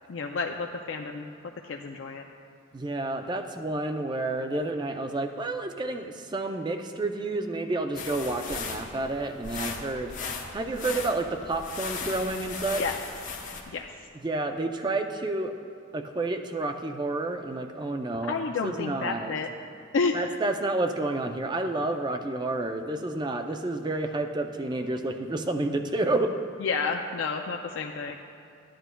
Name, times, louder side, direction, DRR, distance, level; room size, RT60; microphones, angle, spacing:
voice 1, 0.1-1.3 1.6-2.2 12.8-13.0 13.7-13.9 18.3-19.5 19.9-20.2 26.6-28.1, left 4 dB, 65° left, 3 dB, 0.4 m, -30 dB
voice 2, 2.7-12.8 14.2-15.5 15.9-18.4 18.6-19.3 20.1-26.3, right 2 dB, 20° right, 6 dB, 0.4 m, -30 dB
sound 1, 7.9-13.6, left 4 dB, 40° left, 0.8 m, -37 dB
13.5 x 10.0 x 2.2 m, 2.4 s
head